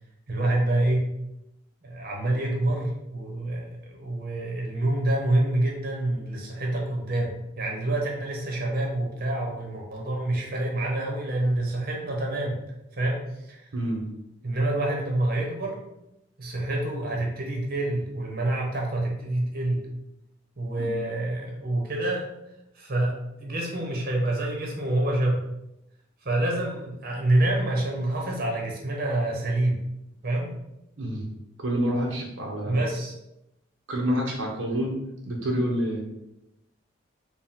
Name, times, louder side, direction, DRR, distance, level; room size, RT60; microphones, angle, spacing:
voice 1, 0.3-1.0 1.8-12.6 12.9-13.7 14.4-15.8 16.4-19.8 20.6-22.3 22.7-23.1 23.4-25.4 26.2-29.8 30.2-30.6 32.7-33.1, right 1 dB, 50° right, -1 dB, 0.9 m, -27 dB
voice 2, 13.7-14.0 20.8-21.0 31.0-31.2 31.6-32.8 33.9-35.0 35.3-36.0, equal, 75° right, -1 dB, 0.7 m, -27 dB
4.6 x 2.3 x 3.5 m, 0.88 s
head